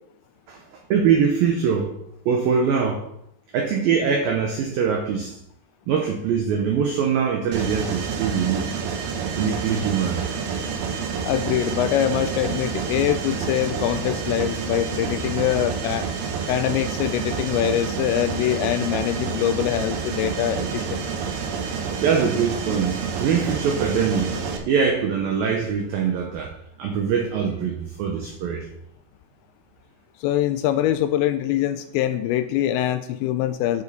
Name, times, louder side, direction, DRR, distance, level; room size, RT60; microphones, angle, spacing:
voice 1, 0.9-1.9 2.3-3.1 3.5-5.4 5.9-8.8 9.4-10.2 22.0-26.5 26.8-28.7, right 6 dB, 85° right, 3 dB, 2.0 m, -23 dB
Mechanisms, 7.5-24.6, right 6 dB, 70° right, 2.6 m, -28 dB
voice 2, 11.2-16.1 16.5-21.1 30.2-33.8, left 12 dB, 85° left, 10 dB, 2.6 m, -24 dB
9.6 x 6.9 x 4.1 m, 0.76 s
omnidirectional pair, 5.4 m